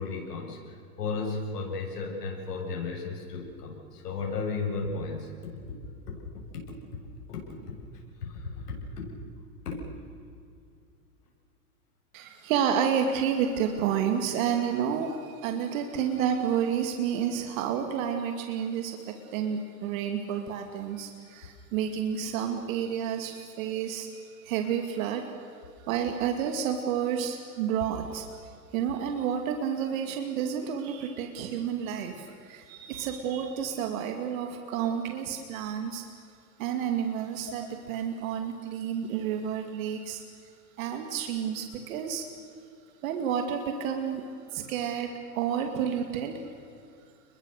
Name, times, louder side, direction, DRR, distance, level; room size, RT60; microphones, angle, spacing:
voice 1, 0.0-5.3 6.1-6.2 6.5-6.6 7.3-7.4 8.2-9.1 9.6-9.8, left 4 dB, 80° left, -1 dB, 7.7 m, -34 dB
voice 2, 12.1-25.5 25.8-36.0 36.6-40.2 40.8-42.3 43.0-44.2 44.5-46.4, right 8 dB, 55° right, 5 dB, 2.7 m, -30 dB
30.0 x 22.0 x 6.8 m, 2.3 s
hypercardioid pair, 140°, 48 cm